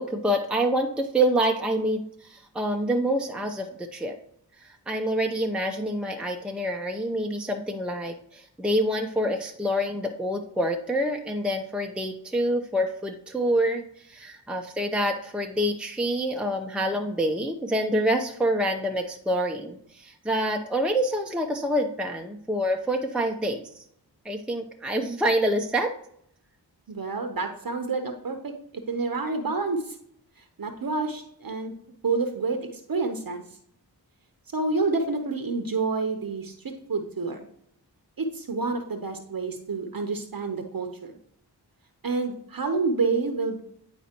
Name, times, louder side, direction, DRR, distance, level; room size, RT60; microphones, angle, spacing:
voice 1, 0.0-4.2 4.6-13.8 14.1-23.7 24.2-25.9, equal, ahead, 2 dB, 0.7 m, -27 dB
voice 2, 26.9-30.0 30.6-31.7 32.0-33.4 34.5-37.5 38.2-41.1 42.0-43.6, right 4 dB, 55° right, 5 dB, 0.9 m, -28 dB
9.9 x 4.1 x 2.9 m, 0.68 s
cardioid pair, 40°, 43 cm